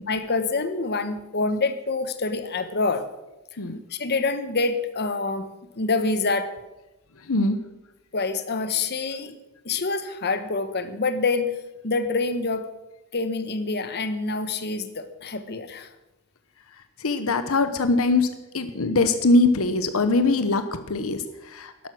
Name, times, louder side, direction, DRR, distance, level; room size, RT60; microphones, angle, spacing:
voice 1, 0.1-3.1 3.9-5.5 5.8-6.5 8.1-9.3 9.6-11.5 11.8-12.7 13.1-15.9, left 3 dB, 50° left, 10 dB, 1.1 m, -26 dB
voice 2, 7.3-7.6 17.0-21.7, left 2 dB, 65° left, 10 dB, 1.0 m, -22 dB
12.0 x 11.5 x 6.3 m, 1.0 s
head